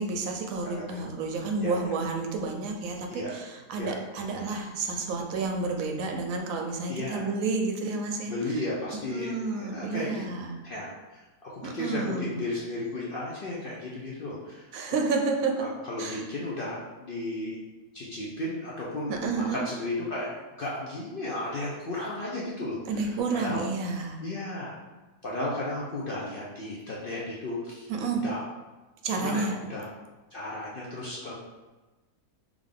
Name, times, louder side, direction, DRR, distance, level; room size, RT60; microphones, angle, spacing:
voice 1, 0.0-8.6 9.1-10.6 11.6-12.4 14.7-15.7 16.0-16.3 19.1-19.6 22.9-24.2 27.9-28.3 29.0-29.6, right 4 dB, 70° right, 3 dB, 0.9 m, -30 dB
voice 2, 0.6-1.0 1.6-1.9 3.1-3.3 3.8-3.9 6.9-7.3 8.3-10.2 10.6-15.0 15.6-17.6 17.9-20.3 20.6-23.6 24.2-24.7 25.2-27.9 28.2-28.4 29.2-29.9 30.3-31.3, left 1 dB, 55° left, -5 dB, 0.6 m, -34 dB
3.5 x 3.3 x 3.6 m, 1.2 s
omnidirectional pair, 1.6 m